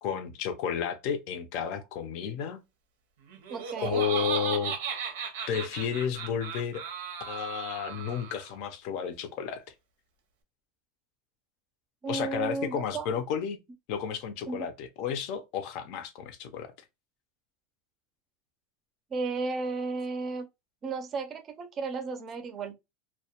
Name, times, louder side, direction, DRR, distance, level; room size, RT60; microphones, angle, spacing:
voice 1, 0.0-2.6 3.8-4.8 5.5-6.8 7.3-9.6 12.1-13.6 13.9-16.7, left 7 dB, 55° left, 0.5 m, -32 dB
Laughter, 3.3-8.5, right 7 dB, 90° right, 0.6 m, -36 dB
voice 2, 3.5-4.0 12.0-13.1 14.5-14.7 19.1-20.5 20.8-22.7, right 3 dB, 30° right, 0.5 m, -33 dB
2.2 x 2.1 x 2.8 m
supercardioid pair, 140°, 0 cm